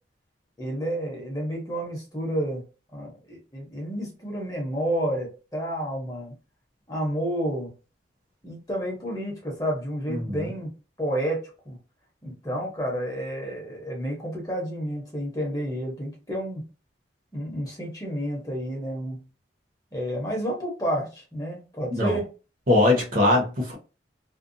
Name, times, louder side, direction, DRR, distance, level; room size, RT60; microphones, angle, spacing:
voice 1, 0.6-2.6 2.9-6.3 6.9-7.7 8.4-10.7 11.0-11.8 12.2-16.6 17.3-19.3 19.9-22.3, equal, 20° left, 0.8 m, -30 dB
voice 2, 10.1-10.4 22.0-22.2 22.7-23.7, left 2 dB, 45° right, 0.9 m, -21 dB
2.5 x 2.2 x 2.6 m
head